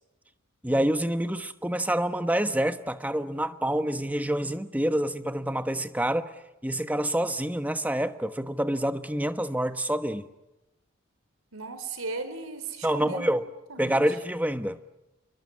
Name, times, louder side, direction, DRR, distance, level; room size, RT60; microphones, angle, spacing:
voice 1, 0.6-6.3 6.6-10.3 12.8-13.4 13.8-14.8, right 1 dB, 5° right, 10 dB, 1.1 m, -27 dB
voice 2, 11.5-13.3 13.7-14.0, right 3 dB, 85° right, 11 dB, 4.3 m, -36 dB
28.5 x 23.5 x 8.7 m, 0.95 s
head